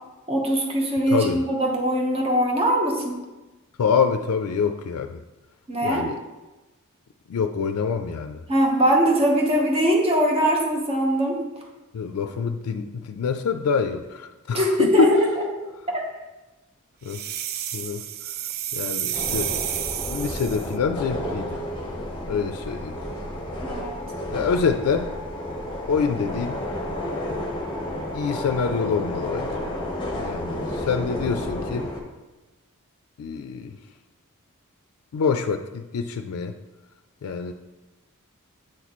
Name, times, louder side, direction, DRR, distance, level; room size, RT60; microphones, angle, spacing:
voice 1, 0.3-3.2 5.7-6.1 8.5-11.4 14.5-15.5 23.6-24.0, equal, 25° right, 0 dB, 0.9 m, -21 dB
voice 2, 1.1-1.4 3.8-5.2 5.8-6.2 7.3-8.4 11.9-15.1 17.0-17.2 17.7-18.0 18.7-19.5 20.1-21.6 22.3-23.0 24.3-25.1 25.9-26.6 28.1-29.7 30.2-31.9 33.2-33.7 35.1-36.5 37.2-37.5, left 5 dB, 90° left, 7 dB, 0.4 m, -26 dB
sound 1, 17.1-20.7, right 11 dB, 45° right, 0.3 m, -30 dB
sound 2, 19.1-32.0, left 1 dB, 20° left, 0.9 m, -31 dB
8.5 x 3.0 x 4.1 m, 1.1 s
head